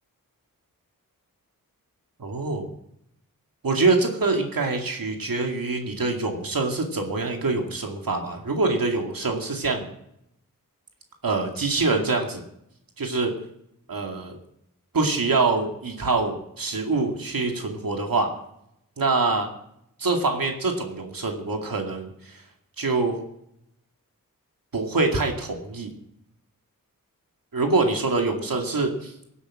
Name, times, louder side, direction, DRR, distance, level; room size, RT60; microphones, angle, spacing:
voice 1, 2.2-2.7 3.6-9.9 11.2-12.4 13.0-13.3 13.9-14.4 14.9-18.3 19.0-19.5 20.0-22.4 22.8-23.2 24.7-25.9 27.5-29.1, right 3 dB, 70° right, 2 dB, 2.4 m, -25 dB
17.5 x 8.4 x 7.4 m, 0.76 s
wide cardioid pair, 70°, 35 cm